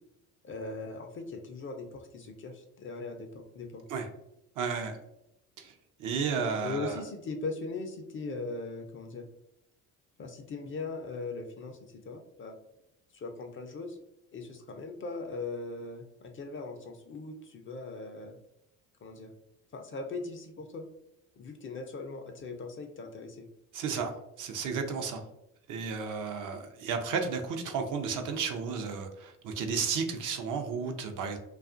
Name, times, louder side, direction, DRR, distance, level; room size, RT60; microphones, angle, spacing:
voice 1, 0.4-3.8 6.6-9.3 10.2-12.6 13.1-14.0 14.3-18.4 19.0-19.3 19.7-20.9 21.4-23.5, left 3 dB, 30° left, 5 dB, 0.5 m, -39 dB
voice 2, 4.6-5.0 5.6-5.7 6.0-7.0 23.7-25.2 25.7-31.4, right 5 dB, 50° right, 4 dB, 0.6 m, -33 dB
2.3 x 2.3 x 2.4 m, 0.82 s
hypercardioid pair, 65°, 40 cm